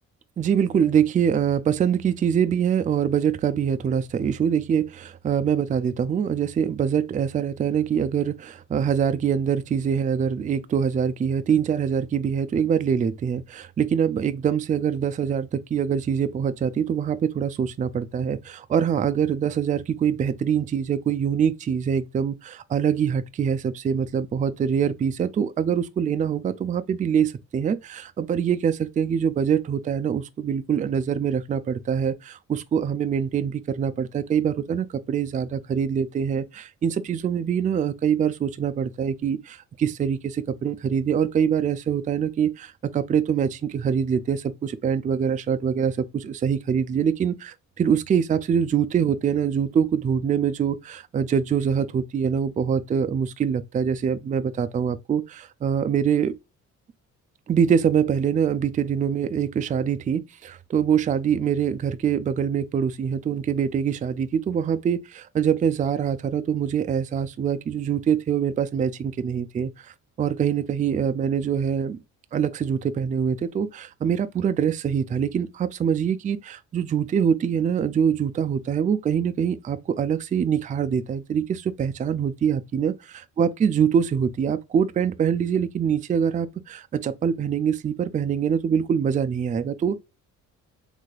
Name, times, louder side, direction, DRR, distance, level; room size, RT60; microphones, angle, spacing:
voice 1, 0.4-56.4 57.5-72.0 72.3-82.9 83.4-90.0, right 7 dB, 25° right, 0.3 m, -24 dB
3.3 x 3.3 x 2.3 m
cardioid pair, 90°, 30 cm